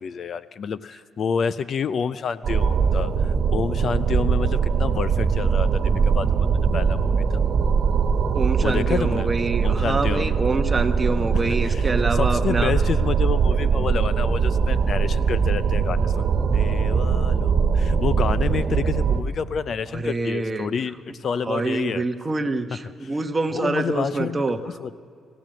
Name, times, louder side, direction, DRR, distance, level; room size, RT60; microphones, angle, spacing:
voice 1, 0.0-7.2 8.6-9.3 9.6-10.3 11.6-11.9 12.1-22.0 22.7-23.1 23.5-25.0, left 6 dB, 45° left, 15 dB, 0.5 m, -29 dB
sound 1, 2.4-19.2, right 6 dB, 45° right, 1.8 m, -21 dB
voice 2, 8.3-12.7 19.9-20.7 21.4-24.6, right 3 dB, 20° right, 7 dB, 1.1 m, -26 dB
26.0 x 15.5 x 7.6 m, 2.3 s
cardioid pair, 130°, 0 cm